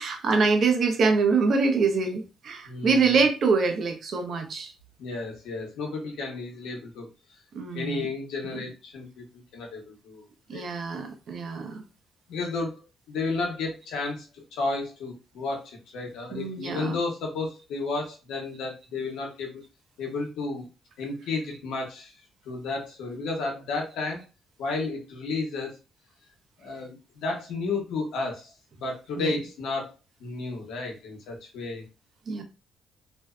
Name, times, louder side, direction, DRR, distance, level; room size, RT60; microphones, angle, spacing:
voice 1, 0.0-4.7 7.5-8.1 8.4-8.6 10.5-11.8 16.3-17.0 29.2-29.4 32.3-32.4, right 4 dB, 60° right, 0.6 m, -25 dB
voice 2, 2.6-3.1 5.0-7.1 7.7-10.2 10.5-10.6 12.3-12.8 13.1-19.6 20.0-20.7 21.0-22.1 22.4-24.2 24.6-25.7 26.6-29.9 30.2-31.8, left 3 dB, 85° left, 0.9 m, -32 dB
2.5 x 2.2 x 2.3 m
cardioid pair, 90°, 0 cm